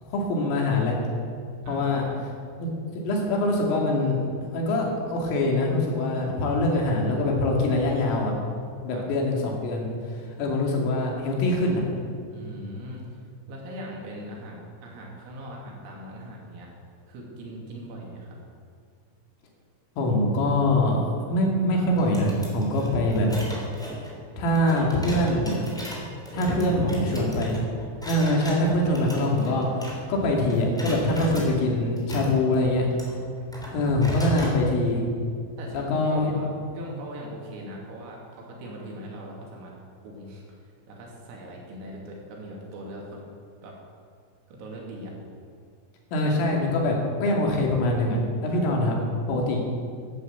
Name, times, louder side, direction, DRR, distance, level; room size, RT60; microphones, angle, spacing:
voice 1, 0.1-0.9 1.6-2.0 2.6-2.7 3.0-4.2 4.5-8.3 8.8-11.8 20.0-21.0 21.3-23.5 24.4-25.6 26.3-27.6 28.1-32.9 33.7-35.0 35.7-36.4 46.1-48.2 48.4-49.0 49.3-49.6, left 1 dB, 80° left, -1 dB, 5.1 m, -24 dB
voice 2, 1.6-2.2 8.9-9.0 12.3-16.7 17.1-18.4 26.3-27.4 33.6-34.6 35.6-36.5 36.8-39.7 40.0-43.2 43.6-43.8 44.5-45.1 48.5-48.7, equal, 80° right, -2 dB, 5.5 m, -40 dB
sound 1, 22.0-30.2 30.5-31.5 32.0-34.6, equal, ahead, 1.8 m, -38 dB
12.0 x 11.0 x 8.1 m, 2.2 s
omnidirectional pair, 5.9 m